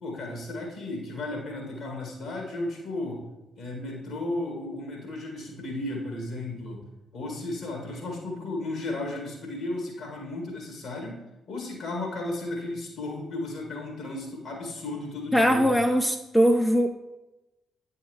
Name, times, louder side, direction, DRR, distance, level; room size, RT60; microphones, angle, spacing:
voice 1, 0.0-3.2 3.6-6.8 7.1-11.2 11.5-15.7, left 2 dB, 60° left, 0 dB, 1.8 m, -34 dB
voice 2, 15.3-16.9, equal, 5° left, 4 dB, 0.5 m, -21 dB
8.7 x 5.7 x 3.2 m, 1.0 s
figure-of-eight pair, 40°, 0 cm